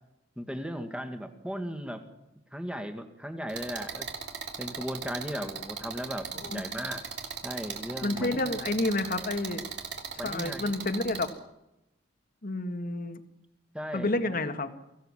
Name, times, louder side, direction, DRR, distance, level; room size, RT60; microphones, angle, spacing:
voice 1, 0.4-2.0 2.5-4.1 4.6-7.1 7.4-8.6 10.2-10.8 13.7-14.4, equal, 5° right, 7 dB, 2.2 m, -37 dB
sound 1, 3.5-11.3, right 6 dB, 65° right, 3.2 m, -38 dB
voice 2, 8.0-9.6 10.2-11.3 12.4-13.2 13.9-14.7, left 2 dB, 50° left, 9 dB, 1.9 m, -30 dB
24.0 x 16.0 x 7.5 m, 0.89 s
head